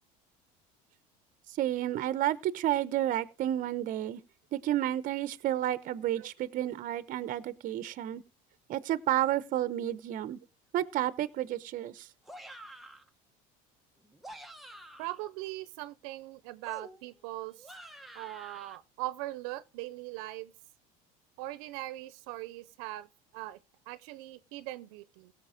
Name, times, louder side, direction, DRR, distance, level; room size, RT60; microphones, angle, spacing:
voice 1, 1.6-4.2 4.5-8.2 8.7-10.4 10.7-12.1, right 13 dB, 50° right, 0.9 m, -31 dB
sound 1, 12.2-13.1 14.0-15.2 16.6-18.8, right 1 dB, ahead, 1.1 m, -49 dB
voice 2, 15.0-17.7 18.1-20.5 21.4-23.6 23.9-25.3, right 17 dB, 75° right, 0.8 m, -40 dB
16.5 x 6.7 x 5.0 m
supercardioid pair, 115°, 18 cm